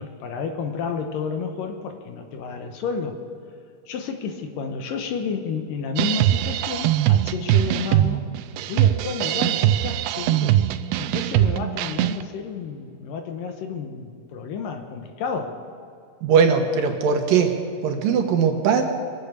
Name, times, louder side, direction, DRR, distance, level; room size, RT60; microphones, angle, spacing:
voice 1, 0.0-3.2 3.9-8.3 8.7-10.6 11.0-15.6, left 5 dB, 70° left, 5 dB, 2.5 m, -31 dB
sound 1, 6.0-12.2, right 13 dB, 90° right, 2.5 m, -21 dB
voice 2, 16.2-17.5 17.8-18.8, right 6 dB, 70° right, 4 dB, 2.7 m, -19 dB
23.0 x 8.3 x 6.7 m, 2.5 s
omnidirectional pair, 4.3 m